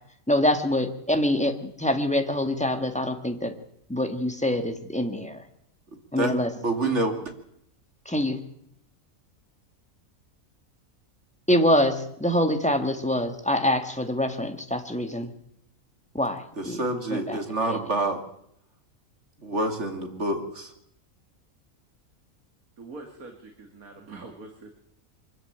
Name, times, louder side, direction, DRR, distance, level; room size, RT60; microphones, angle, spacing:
voice 1, 0.3-3.5 3.9-5.4 6.1-6.5 8.0-8.4 11.5-15.3 16.1-16.8 17.1-17.4 17.7-17.8, left 1 dB, 5° left, 6 dB, 1.8 m, -25 dB
voice 2, 6.2-7.3 16.6-18.2 19.4-20.7, right 2 dB, 55° right, 5 dB, 3.0 m, -27 dB
voice 3, 22.8-24.7, right 3 dB, 85° right, 4 dB, 2.6 m, -43 dB
23.5 x 14.0 x 9.0 m, 0.74 s
omnidirectional pair, 1.5 m